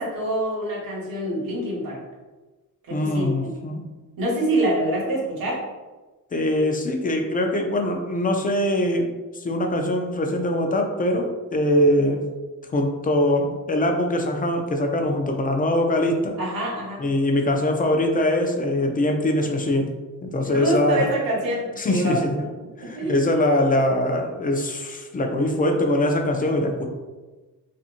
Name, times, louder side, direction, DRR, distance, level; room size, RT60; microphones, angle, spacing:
voice 1, 0.0-2.0 2.9-3.5 4.2-5.6 16.4-17.0 20.4-22.3 22.8-23.2, right 1 dB, 80° right, -5 dB, 1.1 m, -26 dB
voice 2, 2.9-3.8 6.3-12.3 12.7-16.4 17.0-19.9 20.2-21.1 21.8-22.3 22.8-26.9, left 1 dB, 25° left, 3 dB, 0.4 m, -22 dB
2.8 x 2.5 x 2.5 m, 1.2 s
cardioid pair, 90°, 35 cm